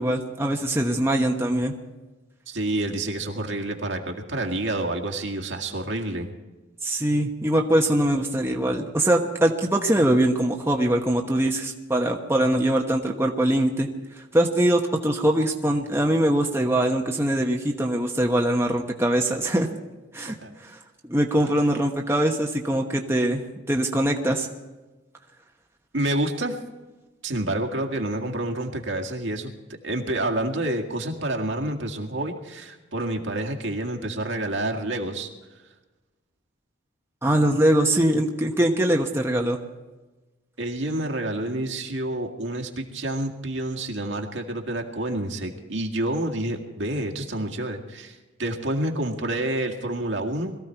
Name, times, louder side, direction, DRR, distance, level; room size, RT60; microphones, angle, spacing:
voice 1, 0.0-1.8 6.8-13.9 14.3-19.7 20.1-20.4 20.6-20.8 21.1-24.5 37.2-39.6, right 1 dB, 10° right, 1 dB, 1.1 m, -22 dB
voice 2, 2.5-6.3 20.3-20.5 21.4-21.7 25.9-26.5 27.2-29.5 29.8-35.3 40.6-50.6, right 1 dB, 70° right, 2 dB, 1.9 m, -28 dB
22.0 x 14.5 x 4.6 m, 1.2 s
head